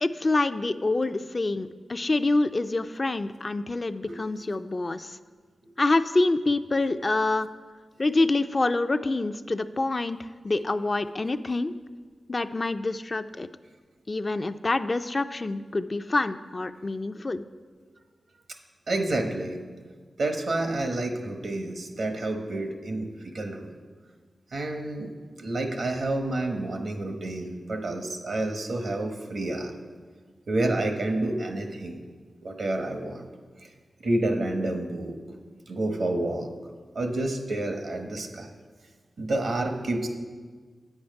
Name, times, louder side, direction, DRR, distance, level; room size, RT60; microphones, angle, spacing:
voice 1, 0.0-5.2 5.8-7.5 8.0-11.7 12.3-13.5 14.1-17.4, left 2 dB, 45° left, 10 dB, 0.4 m, -26 dB
voice 2, 18.9-19.6 20.2-23.1 23.3-23.7 24.5-25.1 25.4-29.7 30.5-32.0 32.4-33.3 34.0-35.2 35.7-36.5 36.9-38.5 39.2-40.1, right 2 dB, 75° right, 5 dB, 1.0 m, -29 dB
8.5 x 7.2 x 5.3 m, 1.5 s
cardioid pair, 40°, 0 cm